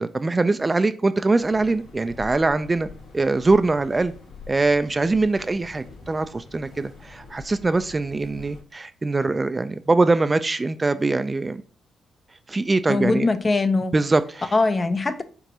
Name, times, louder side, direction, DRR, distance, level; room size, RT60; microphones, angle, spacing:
voice 1, 0.0-2.9 3.1-4.1 4.5-11.6 12.5-13.3 13.9-14.5, right 3 dB, 30° right, 0.4 m, -22 dB
sound 1, 1.4-8.6, left 4 dB, 65° left, 1.7 m, -44 dB
voice 2, 12.9-14.0 14.5-15.2, left 3 dB, 35° left, 0.6 m, -21 dB
5.9 x 3.0 x 2.8 m
hypercardioid pair, 45°, 0 cm